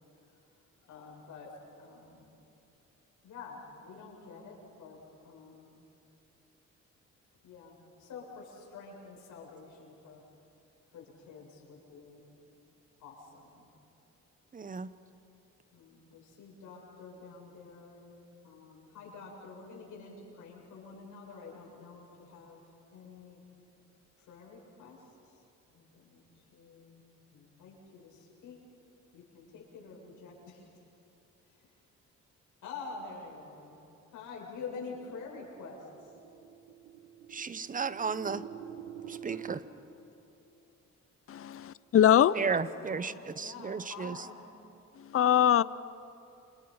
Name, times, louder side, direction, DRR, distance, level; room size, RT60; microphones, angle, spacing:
voice 1, 0.9-1.5 1.8-2.2 3.2-5.0 5.2-5.7 7.4-10.2 10.9-12.2 13.0-13.7 15.7-18.0 18.4-22.6 22.9-23.4 24.3-25.0 25.7-26.2 26.5-27.0 27.3-28.6 29.1-30.7 32.6-33.8 34.1-35.9 42.5-44.4, left 4 dB, 80° left, 7.3 m, -47 dB
voice 2, 14.5-14.9 37.3-38.4 39.1-39.6 42.3-44.2, right 5 dB, 25° right, 0.9 m, -34 dB
sound 1, 34.8-39.6, right 10 dB, 90° right, 1.6 m, -46 dB
voice 3, 41.3-42.3 45.0-45.6, left 10 dB, 45° left, 0.7 m, -23 dB
30.0 x 27.0 x 5.7 m
cardioid pair, 90°, 30 cm